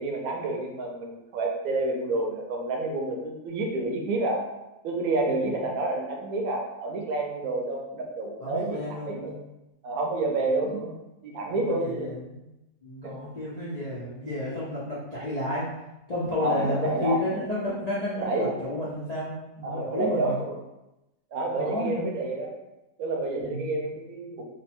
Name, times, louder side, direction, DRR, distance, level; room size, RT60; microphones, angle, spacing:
voice 1, 0.0-4.5 4.8-9.4 9.8-12.1 13.0-13.3 16.4-17.4 18.2-18.5 19.6-20.5 21.3-22.6 23.0-24.4, right 2 dB, 70° right, 0 dB, 1.0 m, -29 dB
voice 2, 8.4-9.3 11.5-12.4 12.8-15.7 16.1-20.3 21.6-22.0 23.4-23.7, left 1 dB, 80° left, -9 dB, 0.3 m, -31 dB
3.1 x 2.2 x 4.2 m, 0.95 s
omnidirectional pair, 1.9 m